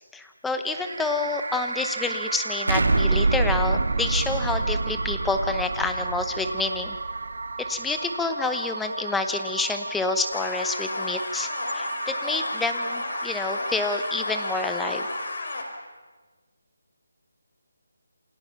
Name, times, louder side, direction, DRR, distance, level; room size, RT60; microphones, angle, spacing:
voice 1, 0.1-7.0 7.7-15.1, left 3 dB, 5° left, 6 dB, 0.9 m, -28 dB
sound 1, 0.7-15.3, right 3 dB, 65° right, 2.5 m, -35 dB
Explosion, 2.7-7.5, right 3 dB, 85° right, 2.7 m, -26 dB
sound 2, 10.3-15.6, left 2 dB, 50° left, 4.6 m, -32 dB
28.0 x 26.5 x 5.8 m, 1.4 s
hypercardioid pair, 175°, 0 cm